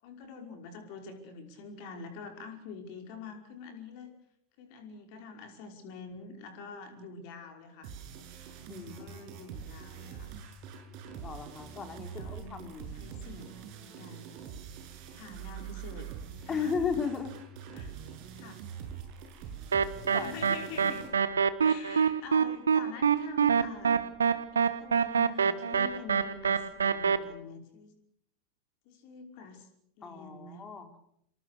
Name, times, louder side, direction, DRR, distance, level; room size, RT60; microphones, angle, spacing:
voice 1, 0.0-4.2 4.6-7.9 8.7-10.3 12.2-14.3 15.1-16.1 16.4-16.7 17.7-18.0 18.4-18.6 20.1-21.1 21.6-24.0 24.5-27.9 28.9-29.7 30.0-30.7, left 5 dB, 45° left, 5 dB, 5.3 m, -46 dB
sound 1, 7.8-21.1, right 8 dB, 45° right, 6.9 m, -44 dB
voice 2, 8.7-9.3 11.2-13.0 16.5-17.3 20.1-20.4 30.0-31.0, left 6 dB, 20° left, 7 dB, 3.7 m, -35 dB
sound 2, 19.7-27.2, right 6 dB, 70° right, 1.4 m, -25 dB
27.0 x 23.0 x 6.8 m, 0.75 s
figure-of-eight pair, 90°, 0 cm